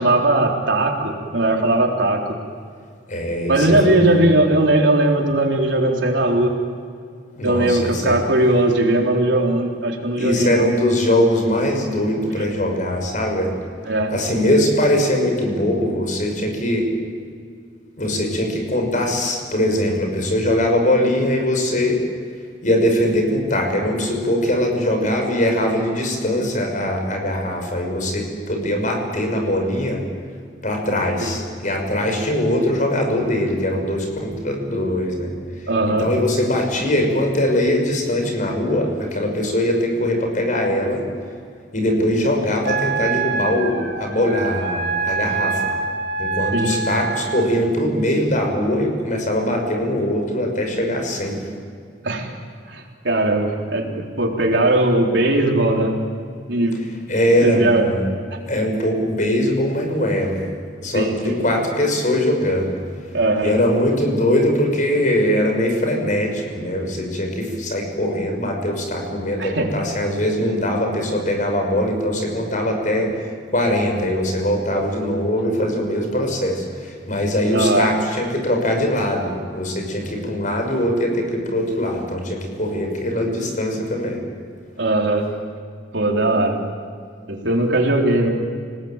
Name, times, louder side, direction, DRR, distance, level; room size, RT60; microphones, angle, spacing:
voice 1, 0.0-2.4 3.5-6.5 7.4-10.7 13.9-14.1 31.2-31.4 35.7-36.1 46.5-46.8 52.0-52.3 52.7-55.9 56.5-56.8 57.4-57.9 60.9-61.3 63.1-63.5 69.4-69.7 77.5-77.9 84.8-85.3 85.9-86.6 87.3-88.3, right 1 dB, 75° right, 1 dB, 3.9 m, -19 dB
voice 2, 3.1-4.2 7.4-8.2 10.2-13.5 14.1-16.9 18.0-22.0 22.6-30.0 30.6-35.3 36.0-41.0 41.7-45.7 46.2-51.4 57.1-58.0 58.5-60.5 60.8-62.7 63.4-84.2, left 1 dB, 45° left, 3 dB, 6.4 m, -21 dB
Wind instrument woodwind instrument, 42.6-47.5, right 4 dB, 55° right, 3.9 m, -25 dB
28.5 x 19.5 x 9.0 m, 2.2 s
head